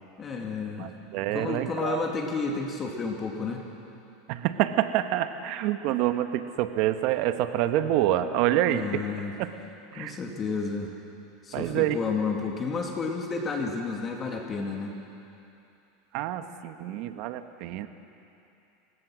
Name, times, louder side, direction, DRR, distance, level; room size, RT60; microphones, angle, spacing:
voice 1, 0.2-0.9 1.3-3.6 8.7-9.3 9.9-10.9 11.4-15.0, left 4 dB, 30° left, 1 dB, 2.5 m, -31 dB
voice 2, 0.8-2.1 4.3-9.0 9.4-9.5 9.9-10.1 11.5-12.0 16.1-17.9, right 13 dB, 60° right, 9 dB, 1.2 m, -27 dB
30.0 x 16.0 x 6.3 m, 2.8 s
supercardioid pair, 115°, 0 cm